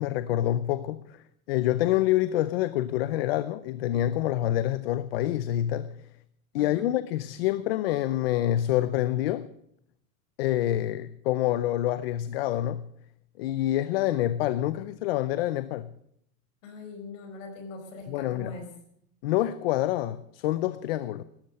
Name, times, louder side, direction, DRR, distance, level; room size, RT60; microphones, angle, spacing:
voice 1, 0.0-6.0 6.5-9.5 10.4-12.8 13.4-15.9 18.1-18.6 19.2-21.2, left 13 dB, 45° left, 0.6 m, -27 dB
voice 2, 16.6-18.7, left 2 dB, 60° left, 5.2 m, -42 dB
18.0 x 13.0 x 5.4 m
supercardioid pair, 175°, 42 cm